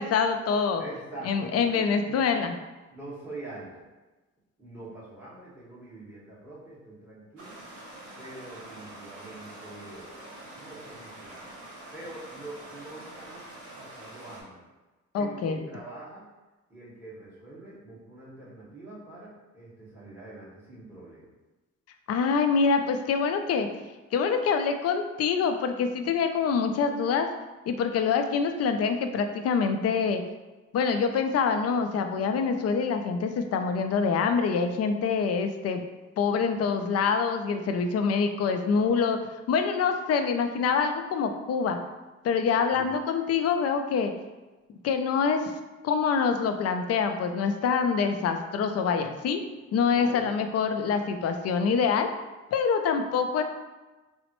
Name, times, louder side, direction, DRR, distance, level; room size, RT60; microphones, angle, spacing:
voice 1, 0.0-0.8 1.2-2.6 15.1-15.6 22.1-23.7 24.1-27.3 27.7-30.2 30.7-35.9 36.2-39.2 39.5-41.8 42.2-44.1 44.8-45.5 45.8-49.4 49.7-52.1 52.5-53.4, left 5 dB, 55° left, 6 dB, 0.4 m, -25 dB
voice 2, 0.8-2.2 2.9-3.8 4.6-7.6 8.2-10.2 10.5-11.5 11.9-13.5 13.7-14.6 15.1-16.2 16.7-21.3 42.7-42.9 49.9-50.4, right 2 dB, 5° right, -8 dB, 1.5 m, -44 dB
Stream, 7.4-14.4, right 1 dB, 50° right, 1.0 m, -45 dB
3.9 x 2.1 x 3.0 m, 1.2 s
cardioid pair, 90°, 30 cm